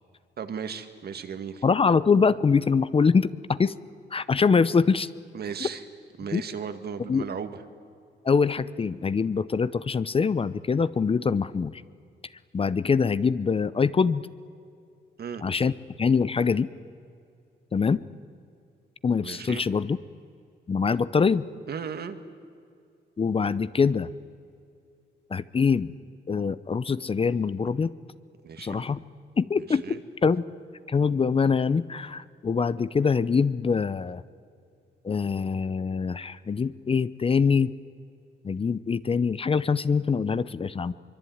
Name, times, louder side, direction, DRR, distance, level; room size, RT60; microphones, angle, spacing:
voice 1, 0.4-1.6 5.3-5.8 6.2-7.6 15.2-15.4 19.2-19.6 21.7-22.2 28.4-28.9 29.7-30.0, right 7 dB, 60° right, 9 dB, 1.9 m, -35 dB
voice 2, 1.6-3.8 4.1-5.1 5.6-5.7 6.3-6.4 7.1-7.3 8.2-11.8 12.5-14.2 15.4-15.7 16.0-16.7 17.7-18.0 19.0-20.0 20.7-21.4 23.2-24.1 25.3-25.9 26.3-27.9 28.6-29.0 29.4-30.4 30.9-34.2 35.0-37.7 38.4-40.9, left 5 dB, 30° left, 16 dB, 0.7 m, -24 dB
24.0 x 23.5 x 9.5 m, 2.4 s
cardioid pair, 105°, 18 cm